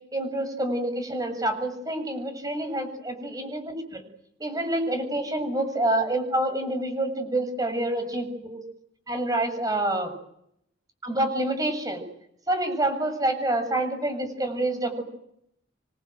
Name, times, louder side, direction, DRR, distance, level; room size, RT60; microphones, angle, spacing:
voice 1, 0.1-4.0 4.4-8.6 9.1-10.1 11.0-12.0 12.5-15.0, right 1 dB, 20° right, 8 dB, 7.3 m, -27 dB
28.0 x 24.5 x 8.0 m, 0.74 s
head